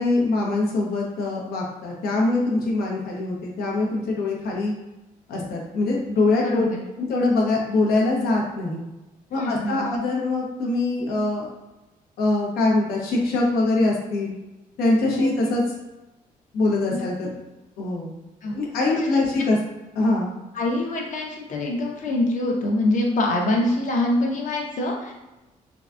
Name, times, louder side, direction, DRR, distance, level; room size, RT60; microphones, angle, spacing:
voice 1, 0.0-4.7 5.3-6.7 7.0-8.8 9.3-11.5 12.2-14.3 14.8-15.6 16.5-17.3 17.8-18.1 18.5-19.6 19.9-20.3, left 2 dB, 85° left, -2 dB, 0.9 m, -23 dB
voice 2, 6.3-6.8 9.3-9.9 15.1-15.3 16.9-17.0 18.4-18.6 20.5-25.1, left 1 dB, 55° left, -1 dB, 0.8 m, -24 dB
3.8 x 2.3 x 2.5 m, 1.0 s
cardioid pair, 90°, 15 cm